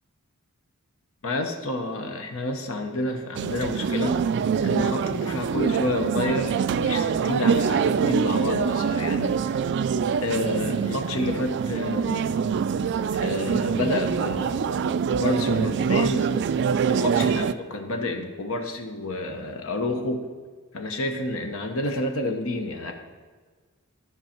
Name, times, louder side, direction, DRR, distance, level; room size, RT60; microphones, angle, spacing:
voice 1, 1.2-4.2 4.6-9.6 10.2-12.3 13.1-16.3 16.9-20.3 20.7-22.9, left 1 dB, 65° left, 4 dB, 0.9 m, -29 dB
sound 1, 3.3-17.5, right 6 dB, 50° right, 0.3 m, -25 dB
13.5 x 5.4 x 4.4 m, 1.5 s
head